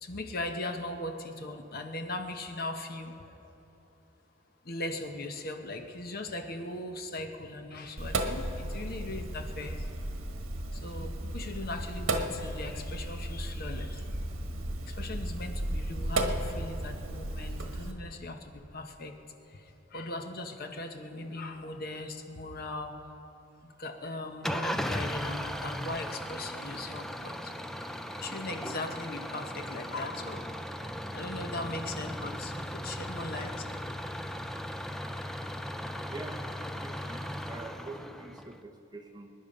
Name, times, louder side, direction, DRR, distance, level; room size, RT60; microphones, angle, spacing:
voice 1, 0.0-3.5 4.6-9.9 10.7-14.2 14.8-19.1 19.4-23.0 23.6-30.5 31.1-33.7, left 2 dB, 45° left, 5 dB, 1.0 m, -39 dB
Sink (filling or washing), 8.0-17.9, right 1 dB, 80° right, 1.3 m, -34 dB
Engine starting / Idling, 24.4-38.6, equal, ahead, 0.5 m, -37 dB
voice 2, 36.1-39.3, right 2 dB, 20° right, 4 dB, 0.9 m, -45 dB
24.0 x 10.5 x 5.3 m, 2.8 s
head